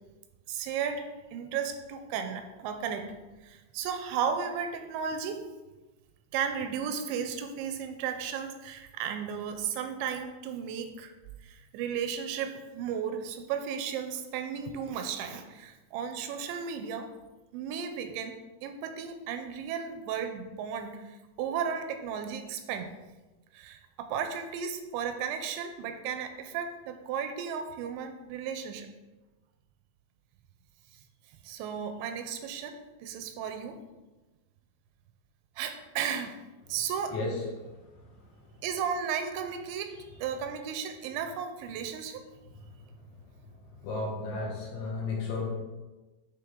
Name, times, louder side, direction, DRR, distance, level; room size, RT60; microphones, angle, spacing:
voice 1, 0.5-3.1 3.4-5.4 6.3-11.1 11.4-17.1 17.5-22.9 23.5-28.9 31.4-32.8 33.0-33.8 35.6-36.3 36.7-37.2 38.6-42.3, right 7 dB, 90° right, 7 dB, 2.9 m, -34 dB
voice 2, 37.1-38.1 42.8-42.9 43.8-45.5, left 3 dB, 80° left, -2 dB, 3.7 m, -34 dB
9.8 x 3.5 x 3.7 m, 1.2 s
omnidirectional pair, 5.1 m